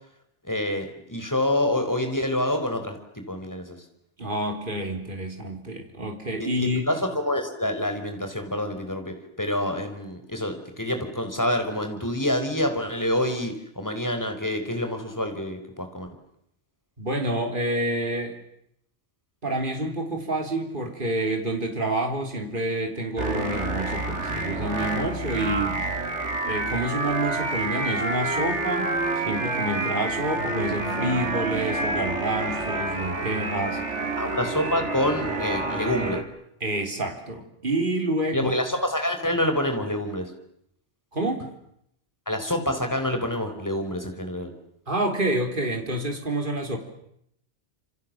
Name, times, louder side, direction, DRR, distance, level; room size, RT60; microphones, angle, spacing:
voice 1, 0.4-3.8 6.4-16.1 34.2-36.2 38.3-40.3 42.3-44.5, left 1 dB, 15° left, 6 dB, 4.5 m, -27 dB
voice 2, 4.2-6.8 17.0-18.3 19.4-25.8 26.5-33.8 36.6-38.5 41.1-41.5 44.9-46.8, right 1 dB, 45° right, 4 dB, 3.9 m, -28 dB
sound 1, 23.2-36.2, right 2 dB, 90° right, 3.5 m, -28 dB
28.0 x 27.0 x 7.5 m, 0.75 s
omnidirectional pair, 1.2 m